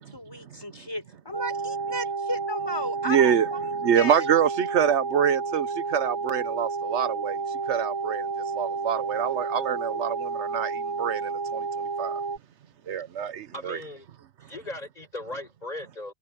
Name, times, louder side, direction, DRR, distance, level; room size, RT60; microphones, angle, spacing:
voice 1, 0.1-4.3, equal, 20° left, 3.9 m, -34 dB
sound 1, 1.3-12.4, right 4 dB, 25° right, 1.0 m, -31 dB
voice 2, 3.1-3.5 3.8-7.4 7.7-8.3 8.5-11.7 12.0-12.2 12.9-13.8, right 8 dB, 80° right, 1.1 m, -25 dB
voice 3, 13.5-14.1 14.5-16.1, left 1 dB, 35° left, 6.6 m, -37 dB
omnidirectional pair, 1.1 m